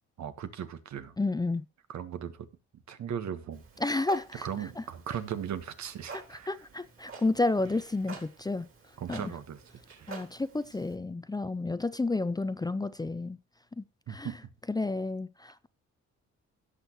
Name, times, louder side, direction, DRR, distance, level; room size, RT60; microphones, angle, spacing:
voice 1, 0.2-1.2 1.9-2.5 2.7-3.6 4.4-6.5 9.0-9.6 9.9-10.1 14.1-14.4, right 9 dB, 65° right, 1.5 m, -38 dB
voice 2, 1.2-1.7 3.8-4.8 6.3-8.7 9.1-9.3 10.1-13.4 13.8-14.3 14.7-15.7, left 2 dB, 15° left, 0.5 m, -31 dB
Clock, 3.5-11.0, right 5 dB, 45° right, 4.1 m, -49 dB
17.0 x 6.5 x 3.1 m
cardioid pair, 90°, 30 cm